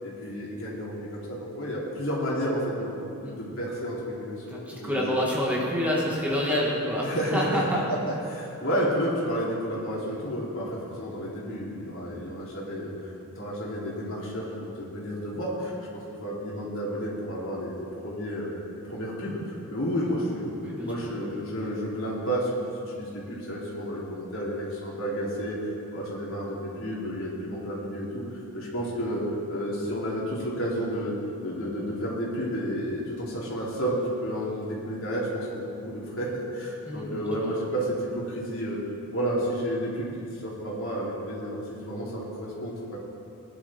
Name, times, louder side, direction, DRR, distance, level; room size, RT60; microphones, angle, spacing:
voice 1, 0.0-2.9 3.2-5.0 7.0-7.6 7.9-17.7 18.0-18.5 18.8-20.6 20.8-28.2 28.5-31.2 31.4-38.8 39.1-43.0, equal, 65° left, -5 dB, 3.5 m, -31 dB
voice 2, 4.5-7.8 20.6-21.1 36.9-37.6, equal, 5° right, -5 dB, 2.0 m, -28 dB
20.5 x 11.0 x 3.8 m, 2.6 s
head